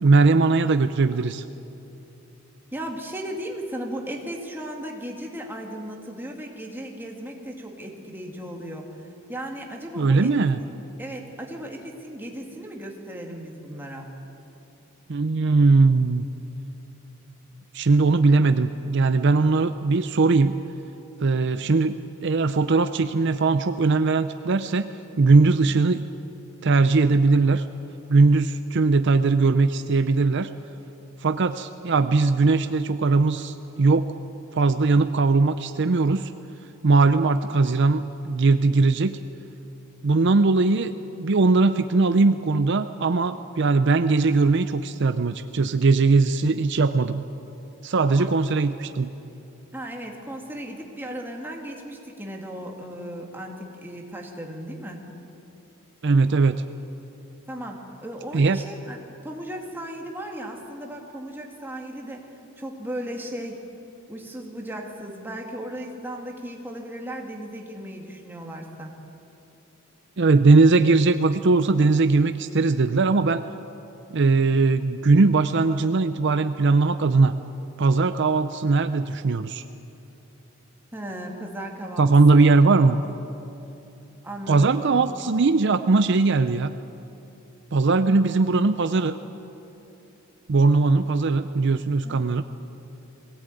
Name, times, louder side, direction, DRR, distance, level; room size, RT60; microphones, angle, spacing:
voice 1, 0.0-1.4 10.0-10.6 15.1-16.2 17.7-20.5 21.2-26.0 26.6-27.7 28.1-30.5 31.2-34.1 34.5-36.3 36.8-39.2 40.0-40.9 41.2-47.3 47.8-49.1 56.0-56.6 58.3-58.6 70.2-73.4 74.1-77.3 77.8-79.6 82.0-83.0 84.5-86.7 87.7-89.2 90.5-92.4, right 3 dB, 55° right, 10 dB, 0.6 m, -20 dB
voice 2, 2.7-10.5 11.0-14.2 48.1-48.3 49.7-55.0 57.5-63.6 64.1-68.9 80.9-82.1 84.2-85.1 92.0-92.3, right 1 dB, 10° right, 0 dB, 2.3 m, -36 dB
21.5 x 17.5 x 9.1 m, 2.9 s
head